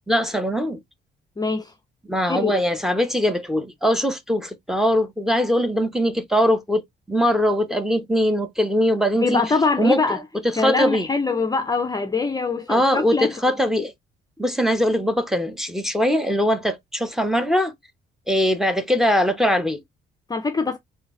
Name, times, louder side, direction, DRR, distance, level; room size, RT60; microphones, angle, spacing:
voice 1, 0.1-0.8 2.1-9.4 9.8-10.0 10.6-11.1 12.7-13.9 14.4-17.7 18.3-19.8, equal, ahead, 0.9 m, -21 dB
voice 2, 1.4-1.7 2.2-2.6 9.2-10.2 10.6-13.3 20.3-20.8, left 4 dB, 20° left, 0.5 m, -23 dB
3.8 x 2.7 x 3.1 m
cardioid pair, 90°, 20 cm